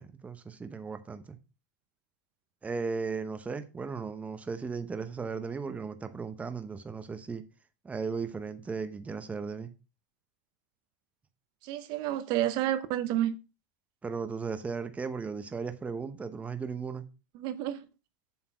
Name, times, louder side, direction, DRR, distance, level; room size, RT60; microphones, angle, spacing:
voice 1, 0.0-1.4 2.6-7.4 7.8-9.7 14.0-17.1, right 5 dB, 15° right, 0.8 m, -36 dB
voice 2, 11.6-13.4 17.3-17.8, right 12 dB, 50° right, 0.7 m, -30 dB
7.5 x 4.4 x 5.7 m
supercardioid pair, 120°, 10 cm